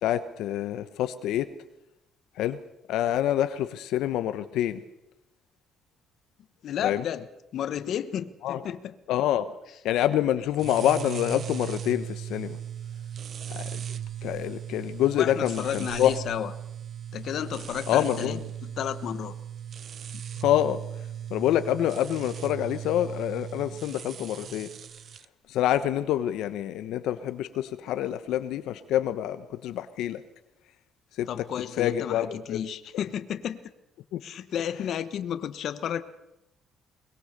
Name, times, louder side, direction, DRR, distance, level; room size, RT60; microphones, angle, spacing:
voice 1, 0.0-1.5 2.4-2.6 2.9-4.8 6.8-7.0 8.4-8.6 9.1-9.6 9.8-12.6 13.5-16.1 17.9-18.4 20.4-20.8 21.3-24.7 25.5-30.2 31.1-31.5 31.8-32.6 34.1-34.2, left 12 dB, 80° left, 1.1 m, -27 dB
voice 2, 6.6-7.3 7.5-8.9 15.1-16.5 17.1-19.4 31.3-33.7 34.2-36.0, left 9 dB, 60° left, 1.2 m, -32 dB
sound 1, 10.5-25.3, right 9 dB, 45° right, 0.8 m, -38 dB
22.5 x 21.5 x 6.7 m
cardioid pair, 135°, 0 cm